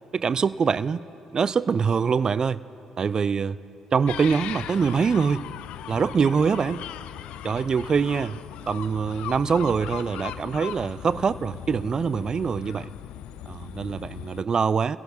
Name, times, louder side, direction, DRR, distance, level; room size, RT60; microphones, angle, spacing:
voice 1, 0.1-1.1 1.3-2.6 3.0-3.6 3.9-5.4 5.9-6.9 7.4-8.4 8.7-12.9 13.5-15.0, right 6 dB, 35° right, 17 dB, 0.3 m, -24 dB
sound 1, 4.1-14.4, left 11 dB, 55° left, 0.4 m, -38 dB
28.5 x 17.0 x 2.7 m, 2.9 s
figure-of-eight pair, 45°, 2 cm